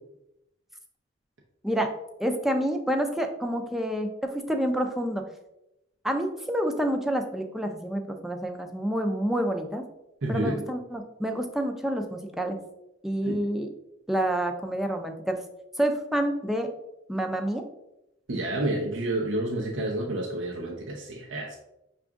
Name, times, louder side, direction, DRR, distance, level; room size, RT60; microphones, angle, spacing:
voice 1, 2.2-5.2 6.0-9.8 10.3-12.6 13.0-13.7 14.1-15.4 15.8-16.7 17.1-17.6, right 1 dB, ahead, 4 dB, 0.4 m, -28 dB
voice 2, 10.2-10.6 13.2-13.4 18.3-21.6, right 1 dB, 85° right, -1 dB, 0.7 m, -29 dB
5.8 x 2.5 x 3.5 m, 0.87 s
head